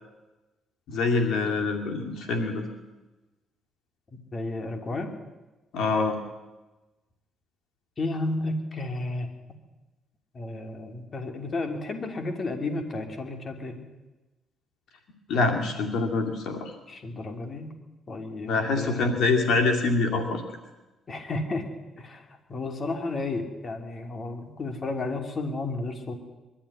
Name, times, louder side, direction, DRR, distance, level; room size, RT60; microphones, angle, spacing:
voice 1, 0.9-2.6 5.7-6.2 15.3-16.7 18.5-20.4, left 3 dB, 75° left, 3 dB, 2.4 m, -25 dB
voice 2, 4.1-5.1 8.0-9.3 10.3-13.8 16.9-17.7 18.1-19.1 21.1-21.7 22.0-26.1, left 2 dB, 40° left, 5 dB, 3.1 m, -32 dB
22.5 x 13.0 x 9.9 m, 1.1 s
cardioid pair, 90°, 0 cm